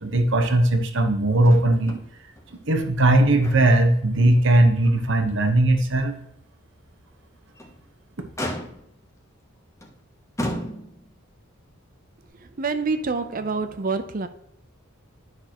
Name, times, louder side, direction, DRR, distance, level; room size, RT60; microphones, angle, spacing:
voice 1, 0.0-2.0 2.7-6.1, right 1 dB, 60° right, 6 dB, 1.1 m, -19 dB
Motor vehicle (road), 1.4-2.0 2.4-2.5 3.0-3.9 4.4-4.5 5.0-5.1 7.3-7.8 8.4-9.0 9.8-10.0 10.4-11.2 12.2-12.3, equal, 15° left, 1.0 m, -33 dB
voice 2, 12.6-14.3, right 4 dB, 40° right, 10 dB, 0.5 m, -26 dB
10.0 x 6.1 x 2.9 m, 0.76 s
head